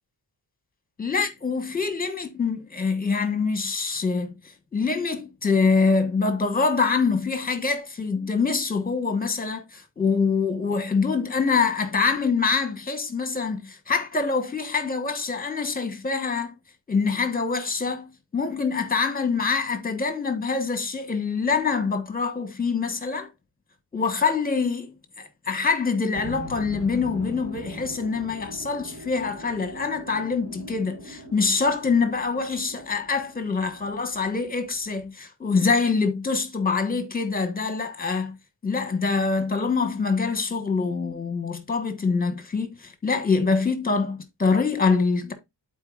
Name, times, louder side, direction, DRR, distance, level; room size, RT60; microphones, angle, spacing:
voice 1, 1.0-4.3 4.7-16.5 16.9-23.3 23.9-38.3 38.6-45.3, left 4 dB, 20° left, 1.3 m, -25 dB
sound 1, 26.1-35.1, right 1 dB, 35° right, 2.1 m, -42 dB
12.0 x 4.4 x 2.4 m
wide cardioid pair, 125°, 43 cm